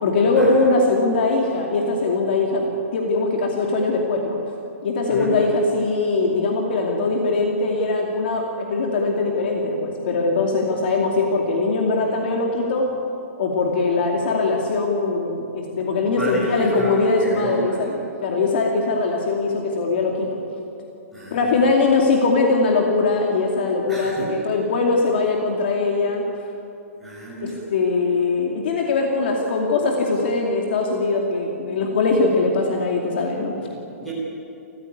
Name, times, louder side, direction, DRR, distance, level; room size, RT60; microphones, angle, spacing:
voice 1, 0.0-4.4 4.8-12.9 13.4-17.9 18.2-20.3 21.3-26.2 27.4-33.5, left 3 dB, 40° left, 1 dB, 2.5 m, -21 dB
voice 2, 16.1-18.0 21.1-21.7 23.9-24.3 27.0-27.6 33.6-34.1, right 2 dB, ahead, -6 dB, 5.7 m, -32 dB
29.0 x 15.0 x 9.5 m, 2.7 s
hypercardioid pair, 175°, 8 cm